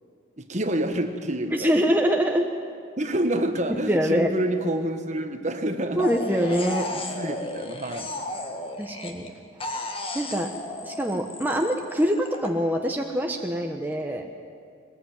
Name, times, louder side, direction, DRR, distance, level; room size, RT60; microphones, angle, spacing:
voice 1, 0.4-1.7 3.0-6.1 6.9-8.1, right 1 dB, 35° right, 6 dB, 1.5 m, -28 dB
voice 2, 1.5-2.5 3.7-4.3 5.9-6.9 8.8-9.3 10.1-10.5 10.8-14.3, equal, 10° right, 2 dB, 1.2 m, -24 dB
sound 1, 6.0-9.3 9.6-12.5, left 2 dB, 25° left, 1.8 m, -34 dB
22.5 x 20.5 x 9.2 m, 2.3 s
head